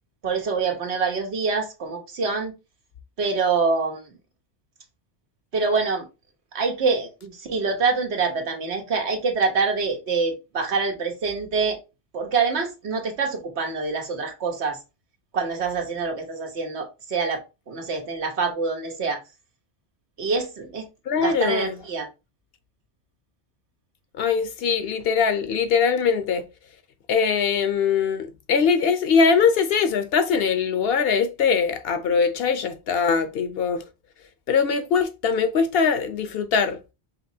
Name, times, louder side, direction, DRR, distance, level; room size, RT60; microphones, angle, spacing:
voice 1, 0.2-2.5 3.2-4.1 5.5-6.0 6.5-11.8 12.1-14.8 15.3-19.2 20.2-20.9 21.2-22.1, right 4 dB, 90° right, 1.3 m, -25 dB
voice 2, 21.1-21.8 24.2-26.5 27.1-33.8 34.5-36.8, left 6 dB, 65° left, 0.8 m, -22 dB
5.2 x 3.0 x 2.7 m
omnidirectional pair, 1.1 m